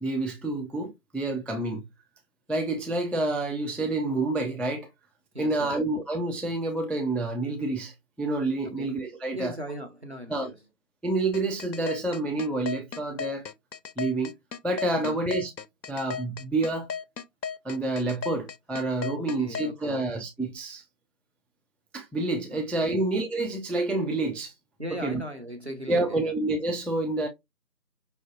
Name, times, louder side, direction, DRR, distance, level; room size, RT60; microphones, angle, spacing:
voice 1, 0.0-1.9 2.5-4.9 5.4-9.6 10.3-10.5 11.0-13.5 14.0-14.3 14.6-15.5 15.9-16.9 17.6-20.8 21.9-24.5 24.9-25.2 25.9-27.3, right 2 dB, 5° left, 0.4 m, -28 dB
voice 2, 5.3-5.7 8.8-8.9 9.3-10.5 15.0-15.2 19.1-20.0 22.5-23.0 24.8-26.3, equal, 40° right, 0.8 m, -38 dB
sound 1, 11.3-19.7, left 6 dB, 85° left, 0.7 m, -35 dB
5.4 x 2.5 x 2.4 m
figure-of-eight pair, 170°, 50 cm